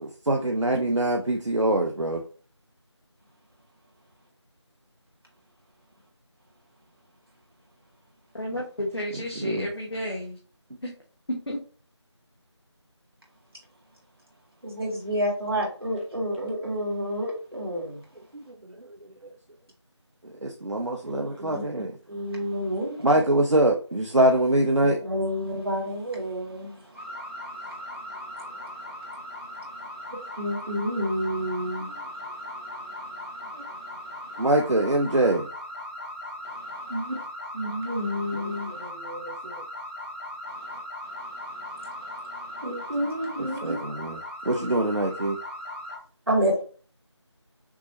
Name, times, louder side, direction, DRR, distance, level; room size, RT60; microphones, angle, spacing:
voice 1, 0.2-2.2 9.1-9.7 18.3-19.0 19.2-19.3 20.2-22.0 23.0-25.0 34.4-35.5 38.3-39.6 43.6-45.4, right 1 dB, 80° right, 2 dB, 0.8 m, -24 dB
voice 2, 8.3-10.4 10.8-10.9 11.3-11.6, equal, 55° left, -2 dB, 1.2 m, -31 dB
voice 3, 14.6-18.0 21.1-21.6 22.1-23.2 25.0-34.4 36.4-37.2 37.5-38.9 40.6-40.8 41.1-43.8 44.5-44.6 46.3-46.6, equal, 55° right, -2 dB, 2.1 m, -31 dB
sound 1, 26.9-46.0, left 1 dB, 25° left, 0.9 m, -38 dB
6.0 x 3.0 x 2.8 m, 0.40 s
figure-of-eight pair, 180°, 15 cm